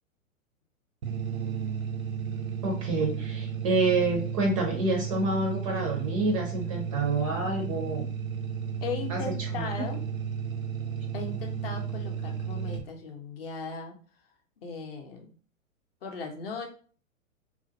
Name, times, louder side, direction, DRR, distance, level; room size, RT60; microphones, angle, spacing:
sound 1, 1.0-12.8, right 7 dB, 75° right, 0.6 m, -33 dB
voice 1, 2.6-8.1 9.1-9.2 9.5-9.7, right 2 dB, 25° right, 1 dB, 0.4 m, -28 dB
voice 2, 8.8-10.0 11.1-14.0 14.6-15.3 16.0-16.7, left 4 dB, 45° left, 3 dB, 0.6 m, -37 dB
2.4 x 2.0 x 2.6 m, 0.40 s
figure-of-eight pair, 105°, 41 cm